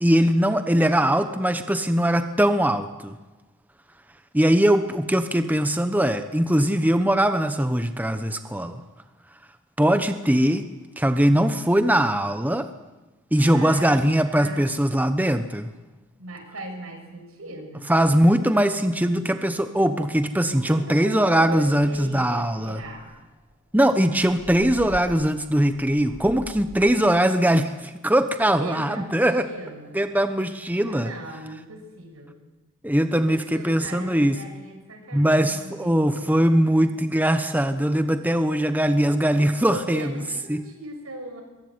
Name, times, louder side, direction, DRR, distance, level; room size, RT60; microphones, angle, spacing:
voice 1, 0.0-3.2 4.3-8.8 9.8-10.6 11.0-12.7 13.3-15.7 17.9-22.8 23.7-29.4 29.9-31.1 32.8-34.4 35.1-40.1 40.5-40.6, right 1 dB, 10° right, 9 dB, 1.0 m, -21 dB
voice 2, 13.4-13.9 14.3-14.7 16.2-17.9 20.5-23.1 28.5-30.0 30.8-32.3 33.5-36.5 39.7-41.4, right 1 dB, 80° right, 5 dB, 6.5 m, -38 dB
sound 1, 23.1-27.0, equal, 25° left, 5.7 m, -43 dB
23.0 x 22.5 x 9.6 m, 1.1 s
head